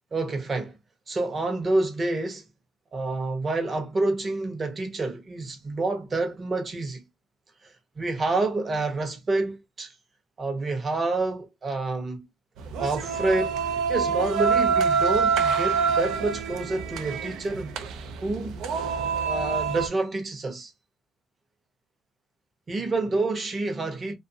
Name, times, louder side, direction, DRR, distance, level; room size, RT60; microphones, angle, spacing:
voice 1, 0.1-0.8 1.1-2.5 2.9-7.0 7.6-9.9 10.4-12.2 12.8-13.6 13.9-17.7 18.2-18.6 19.1-20.7 22.7-24.2, right 2 dB, 30° right, 0.9 m, -28 dB
sound 1, 12.6-19.9, right 5 dB, 75° right, 0.5 m, -26 dB
2.5 x 2.4 x 2.7 m
cardioid pair, 100°, 0 cm